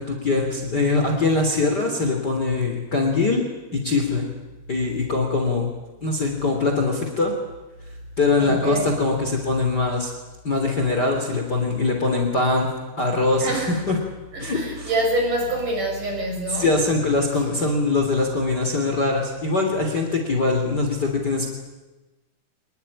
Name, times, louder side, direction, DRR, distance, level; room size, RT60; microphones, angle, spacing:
voice 1, 0.0-3.4 3.7-4.2 4.7-5.7 6.0-7.3 8.2-10.1 10.4-12.7 13.0-14.0 14.4-14.9 16.5-21.5, left 3 dB, 25° left, 3 dB, 3.4 m, -22 dB
voice 2, 8.4-8.9 13.4-13.7 14.3-16.7, right 1 dB, 50° right, 1 dB, 8.3 m, -25 dB
26.0 x 20.0 x 10.0 m, 1.1 s
omnidirectional pair, 4.6 m